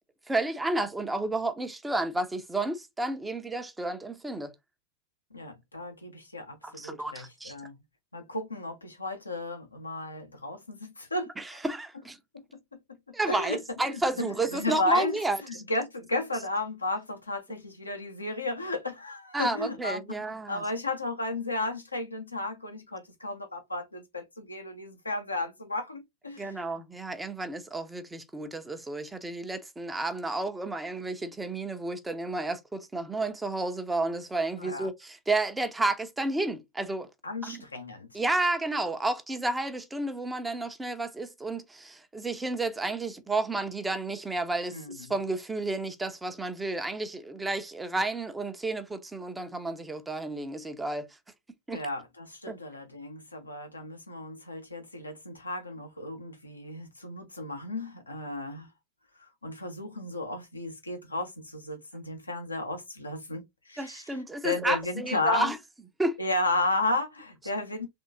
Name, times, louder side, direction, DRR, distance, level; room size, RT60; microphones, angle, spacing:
voice 1, 0.3-4.5 6.6-7.5 11.4-12.2 13.1-15.4 19.3-20.6 26.4-37.1 37.4-37.6 38.1-51.0 51.7-51.8 52.5-52.6 63.8-65.6 66.0-66.2, right 2 dB, 10° right, 0.9 m, -31 dB
voice 2, 5.3-7.8 8.1-11.3 12.7-12.8 13.3-14.0 14.5-15.1 15.5-26.6 34.6-34.9 37.2-38.2 44.7-45.1 51.7-58.7 59.2-65.5 66.2-67.9, left 2 dB, 80° left, 1.2 m, -34 dB
3.6 x 3.6 x 4.0 m
figure-of-eight pair, 90°, 0 cm